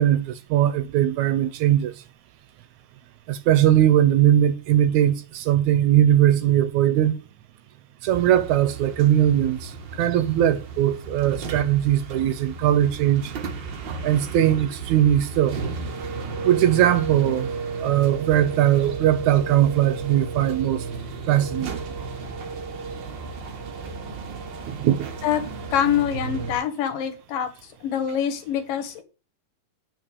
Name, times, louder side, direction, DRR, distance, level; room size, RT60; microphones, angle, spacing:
voice 1, 0.0-1.9 3.3-7.2 8.0-9.7 10.0-13.3 14.0-15.6 16.5-17.5 17.8-20.8 21.3-21.8 24.7-25.1, right 11 dB, 75° right, 2.0 m, -20 dB
sound 1, 8.1-26.5, right 4 dB, 55° right, 1.4 m, -33 dB
voice 2, 25.7-27.5 27.8-29.0, left 9 dB, 85° left, 3.1 m, -25 dB
9.0 x 5.5 x 6.7 m
omnidirectional pair, 3.7 m